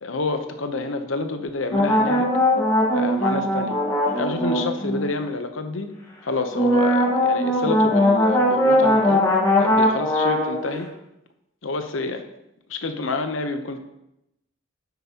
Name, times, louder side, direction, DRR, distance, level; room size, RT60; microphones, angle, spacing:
voice 1, 0.0-2.3 2.9-3.8 4.1-5.9 6.2-10.9 11.6-12.2 12.7-13.8, left 3 dB, 90° left, 8 dB, 0.8 m, -28 dB
sound 1, 1.7-5.1 6.5-10.8, left 1 dB, 15° left, 1.7 m, -20 dB
9.7 x 7.8 x 2.9 m, 0.87 s
head